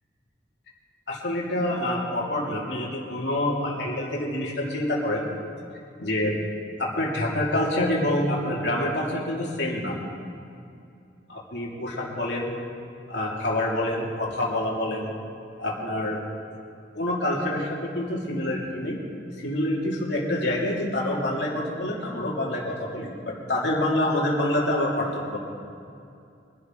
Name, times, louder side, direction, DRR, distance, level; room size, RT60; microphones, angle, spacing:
voice 1, 1.1-5.3 6.0-6.4 6.8-10.0 11.3-12.6 13.1-15.1 15.6-16.2 16.9-19.0 19.4-25.4, left 1 dB, 80° left, -3 dB, 2.8 m, -27 dB
23.5 x 11.5 x 3.9 m, 2.5 s
head